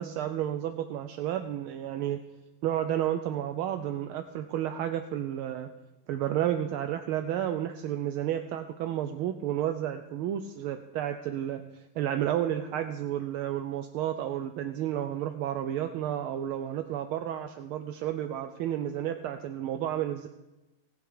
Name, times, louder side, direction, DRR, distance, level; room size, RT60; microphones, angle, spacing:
voice 1, 0.0-2.2 2.6-5.7 6.1-20.3, right 11 dB, 80° right, 8 dB, 1.5 m, -31 dB
19.0 x 6.9 x 4.9 m, 1.0 s
omnidirectional pair, 2.4 m